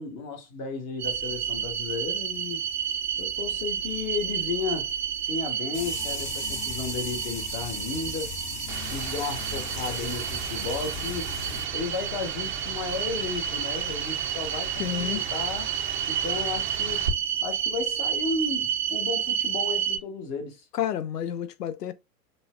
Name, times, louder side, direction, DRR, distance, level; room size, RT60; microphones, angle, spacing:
voice 1, 0.0-2.6 3.2-4.9 5.2-8.3 8.9-11.3 11.7-15.7 16.1-17.1 17.4-20.6, left 4 dB, 35° left, 1.0 m, -34 dB
sound 1, 1.0-20.0, right 8 dB, 75° right, 0.7 m, -30 dB
sound 2, 5.7-11.6, left 4 dB, 15° left, 0.4 m, -37 dB
sound 3, 8.7-17.1, right 6 dB, 40° right, 0.5 m, -37 dB
voice 2, 14.8-15.2 20.7-21.9, left 10 dB, 80° left, 0.6 m, -30 dB
4.0 x 2.0 x 2.3 m
figure-of-eight pair, 100°, 48 cm